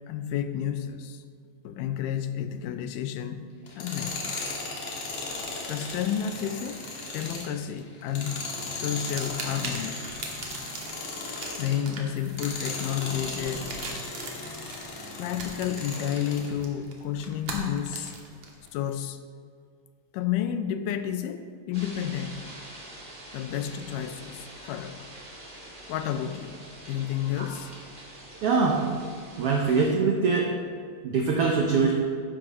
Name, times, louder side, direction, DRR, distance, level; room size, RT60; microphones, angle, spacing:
voice 1, 0.1-1.2 1.6-3.5 3.8-4.4 5.7-10.1 11.6-13.9 15.2-18.1 18.7-19.2 20.1-22.5 23.3-25.1 25.9-27.7, left 9 dB, 85° left, 9 dB, 2.1 m, -31 dB
Tools, 3.7-11.9 12.3-16.5, left 3 dB, 60° left, 2.4 m, -36 dB
sound 1, 5.1-7.8 8.1-18.7, right 3 dB, 55° right, 2.0 m, -41 dB
sound 2, 21.7-29.9, right 1 dB, 20° right, 1.3 m, -45 dB
voice 2, 28.4-28.8 29.4-30.5 31.0-31.9, right 4 dB, 80° right, -1 dB, 1.3 m, -23 dB
12.0 x 10.0 x 3.0 m, 2.1 s
omnidirectional pair, 3.8 m